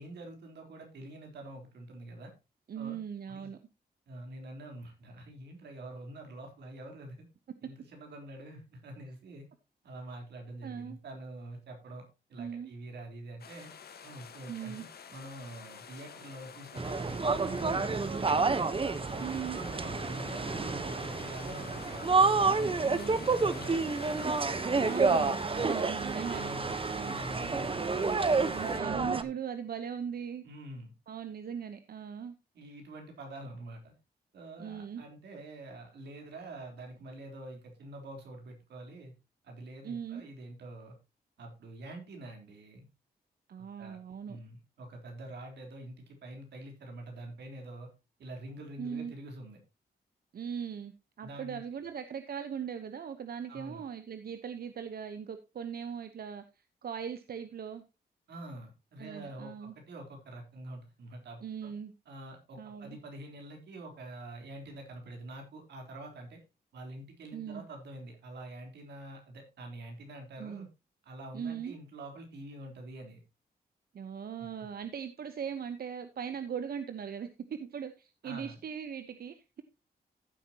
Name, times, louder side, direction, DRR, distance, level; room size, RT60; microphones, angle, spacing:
voice 1, 0.0-2.3 2.7-3.0 3.3-3.5 4.1-7.3 7.6-9.5 9.8-13.7 14.0-14.9 15.1-18.5 19.1-23.7 25.6-25.7 26.2-27.7 28.7-29.3 30.4-30.9 32.5-33.9 34.3-39.1 39.4-41.0 41.4-42.9 43.6-44.0 44.3-47.9 48.2-49.6 51.2-51.6 53.5-53.8 58.3-61.7 62.1-66.4 66.7-70.7 71.0-73.2 78.2-78.6, right 1 dB, 90° right, 2 dB, 3.7 m, -46 dB
voice 2, 2.7-3.6 7.6-7.7 10.6-11.0 12.4-12.7 14.5-14.9 19.2-19.6 22.8-23.2 24.7-26.5 26.9-27.2 28.4-30.4 31.1-32.4 34.6-35.0 39.8-40.2 43.5-44.4 48.8-49.1 50.3-56.4 56.8-57.8 59.0-59.7 61.4-61.9 62.6-63.0 67.3-67.6 70.4-70.7 71.3-71.7 73.9-79.6, right 7 dB, 65° right, 9 dB, 1.0 m, -39 dB
sound 1, 13.4-28.8, left 7 dB, 70° left, 1.5 m, -48 dB
sound 2, 16.8-29.2, right 4 dB, 30° right, 1.0 m, -29 dB
14.5 x 8.1 x 2.9 m, 0.28 s
cardioid pair, 85°, 17 cm